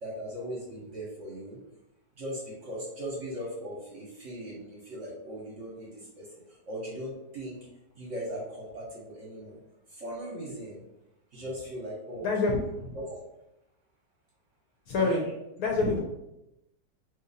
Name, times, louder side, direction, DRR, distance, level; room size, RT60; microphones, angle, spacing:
voice 1, 0.0-1.6 2.2-5.9 6.2-6.3 6.7-7.6 8.0-9.6 9.9-10.8 11.3-12.5 12.9-13.2 15.0-15.3, equal, 55° right, -3 dB, 0.9 m, -38 dB
voice 2, 12.2-12.9 14.9-15.2 15.6-16.0, left 3 dB, 70° left, 0 dB, 0.9 m, -26 dB
2.9 x 2.5 x 3.9 m, 0.88 s
omnidirectional pair, 1.9 m